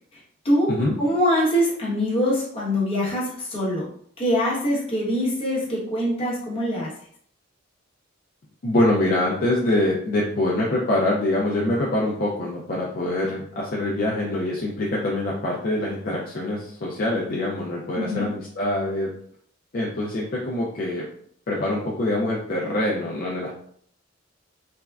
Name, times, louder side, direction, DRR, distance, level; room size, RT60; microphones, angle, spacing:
voice 1, 0.1-0.7 1.0-3.9 4.2-6.9 18.0-18.2, equal, 30° left, -6 dB, 0.9 m, -23 dB
voice 2, 8.6-19.1 19.7-21.1 21.5-23.5, left 1 dB, 45° left, -4 dB, 0.4 m, -24 dB
3.4 x 2.1 x 2.2 m, 0.62 s
head